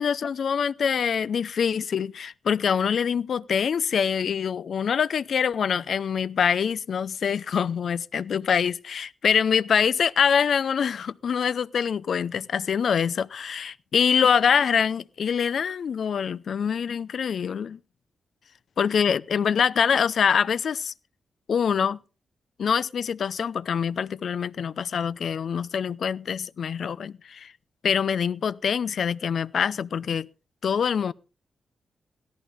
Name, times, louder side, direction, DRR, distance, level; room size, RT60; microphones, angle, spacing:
voice 1, 0.0-17.8 18.8-20.9 21.5-22.0 22.6-27.5 27.8-30.3 30.6-31.1, left 7 dB, 60° left, 0.6 m, -25 dB
17.0 x 13.5 x 3.5 m
wide cardioid pair, 155°, 0 cm